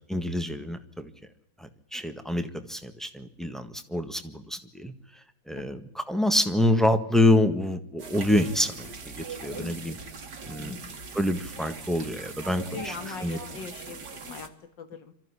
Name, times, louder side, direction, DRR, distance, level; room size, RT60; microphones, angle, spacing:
voice 1, 0.1-1.1 1.6-4.9 5.5-10.0 10.5-10.8 11.1-13.4, left 1 dB, ahead, 7 dB, 1.4 m, -27 dB
sound 1, 8.0-14.5, right 4 dB, 65° right, 2.6 m, -41 dB
voice 2, 9.5-9.8 10.6-10.9 12.7-14.5 14.8-15.1, left 6 dB, 80° left, 10 dB, 2.3 m, -41 dB
26.0 x 14.0 x 10.0 m, 0.79 s
omnidirectional pair, 1.9 m